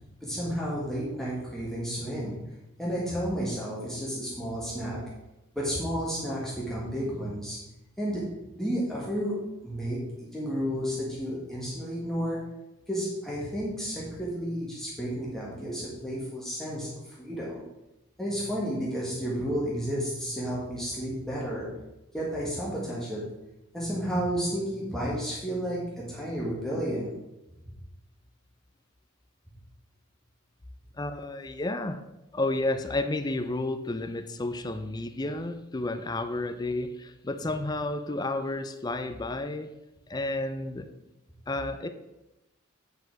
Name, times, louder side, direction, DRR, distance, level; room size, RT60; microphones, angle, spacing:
voice 1, 0.2-5.0 5.5-7.6 8.0-8.2 8.6-9.3 9.6-12.4 12.9-17.6 18.2-21.7 22.1-23.2 23.7-27.1, equal, ahead, -6 dB, 1.4 m, -32 dB
voice 2, 31.0-32.0 32.3-39.7 40.1-40.9 41.5-41.9, left 2 dB, 20° left, 9 dB, 0.4 m, -31 dB
8.3 x 5.0 x 4.6 m, 0.96 s
head